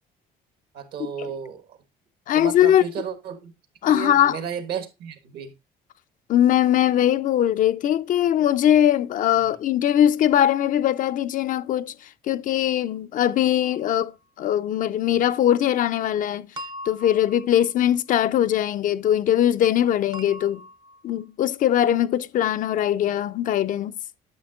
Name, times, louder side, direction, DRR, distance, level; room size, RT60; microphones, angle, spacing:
voice 1, 0.7-1.8 2.3-3.5 3.8-5.5 9.4-9.5, right 7 dB, 70° right, 1.3 m, -33 dB
voice 2, 2.3-2.8 3.8-4.4 6.3-11.9 12.3-14.1 14.4-16.5 16.9-20.6 21.0-23.9, left 11 dB, 50° left, 0.4 m, -21 dB
sound 1, 13.6-14.1 16.6-18.2 20.1-21.3, equal, 25° right, 0.5 m, -41 dB
9.4 x 6.4 x 2.3 m
cardioid pair, 110°, 17 cm